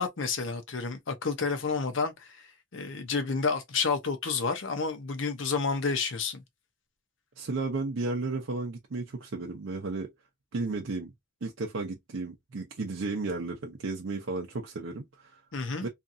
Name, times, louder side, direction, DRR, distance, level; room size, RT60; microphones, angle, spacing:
voice 1, 0.0-2.4 2.7-6.4 15.5-15.9, left 4 dB, 75° left, 0.7 m, -30 dB
voice 2, 7.4-10.1 10.5-11.1 11.4-15.4 15.8-15.9, right 3 dB, 75° right, 0.6 m, -33 dB
2.8 x 2.5 x 2.5 m
head